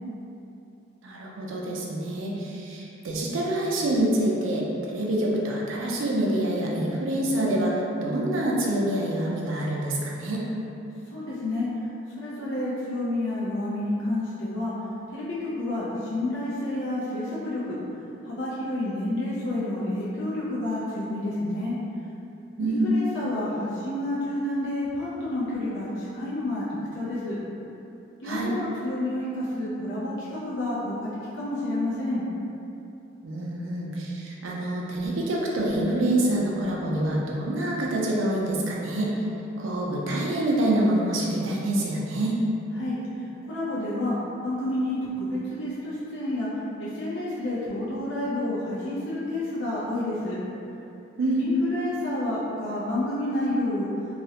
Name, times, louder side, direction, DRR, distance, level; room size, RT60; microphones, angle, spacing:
voice 1, 1.0-7.7 8.0-10.4 22.6-22.9 28.2-28.5 33.2-39.1 39.6-42.4 51.2-51.5, right 1 dB, 85° right, -3 dB, 0.4 m, -26 dB
voice 2, 11.1-11.7 12.2-14.7 15.1-17.8 18.2-21.8 22.6-26.6 26.9-27.4 28.2-31.1 31.3-32.3 42.8-43.0 43.5-44.2 44.4-46.5 46.8-50.4 51.4-53.9, left 1 dB, 75° left, -9 dB, 0.4 m, -29 dB
2.3 x 2.0 x 2.8 m, 2.8 s
head